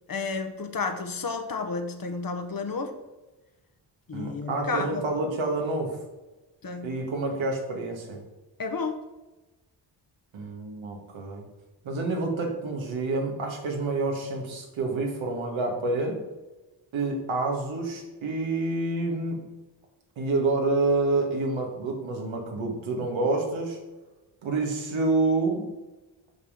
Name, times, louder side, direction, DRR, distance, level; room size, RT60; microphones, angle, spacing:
voice 1, 0.1-3.0 4.1-5.0 6.6-6.9 8.6-9.0, left 4 dB, 45° left, 6 dB, 1.2 m, -31 dB
voice 2, 4.1-6.0 6.8-8.2 10.3-11.4 11.8-16.2 16.9-19.4 20.2-23.8 24.4-25.7, right 2 dB, 80° right, 1 dB, 1.8 m, -28 dB
6.4 x 5.5 x 5.0 m, 1.1 s
supercardioid pair, 50°, 46 cm